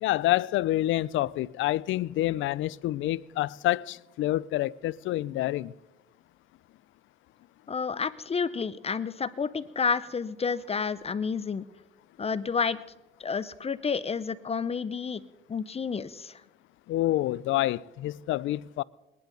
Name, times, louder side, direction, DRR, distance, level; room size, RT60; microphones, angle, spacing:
voice 1, 0.0-5.7 16.9-18.8, left 15 dB, 80° left, 0.4 m, -27 dB
voice 2, 7.7-11.7 12.2-12.8 13.2-15.2 15.5-16.4, left 5 dB, 30° left, 0.5 m, -30 dB
21.0 x 10.5 x 3.9 m
cardioid pair, 90°, 20 cm